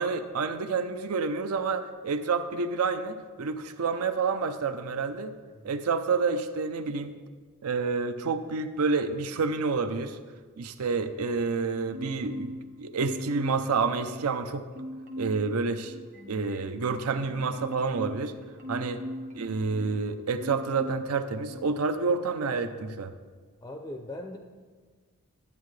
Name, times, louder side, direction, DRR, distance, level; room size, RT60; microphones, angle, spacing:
voice 1, 0.0-5.3 5.6-7.1 7.6-10.2 10.6-14.7 15.2-15.9 16.3-18.3 18.7-19.0 19.4-23.1, right 4 dB, 75° right, 10 dB, 0.6 m, -29 dB
Marimba xylophone, 11.9-12.7 13.0-14.4 14.7-15.5 15.8-20.0 20.4-21.1 21.5-21.7, equal, 40° right, 1.0 m, -40 dB
voice 2, 23.6-24.4, left 1 dB, 15° left, 4 dB, 0.4 m, -41 dB
12.5 x 8.2 x 3.2 m, 1.5 s
head